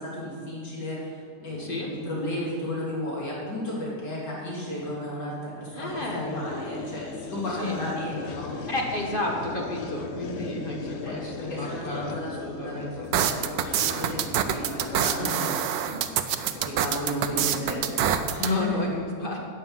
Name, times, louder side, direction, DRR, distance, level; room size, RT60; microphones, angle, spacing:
voice 1, 0.0-8.5 11.0-15.7 16.2-18.8, left 1 dB, 90° left, -6 dB, 3.6 m, -34 dB
voice 2, 1.6-1.9 5.7-6.4 7.6-7.8 8.7-13.1 15.2-15.5 15.9-16.1 17.5-17.8 18.5-19.4, left 1 dB, 35° left, -1 dB, 1.6 m, -32 dB
sound 1, 5.9-16.3, left 4 dB, 55° left, 0.8 m, -38 dB
sound 2, 13.1-18.5, right 9 dB, 70° right, 1.1 m, -25 dB
9.3 x 8.7 x 7.3 m, 2.2 s
omnidirectional pair, 1.8 m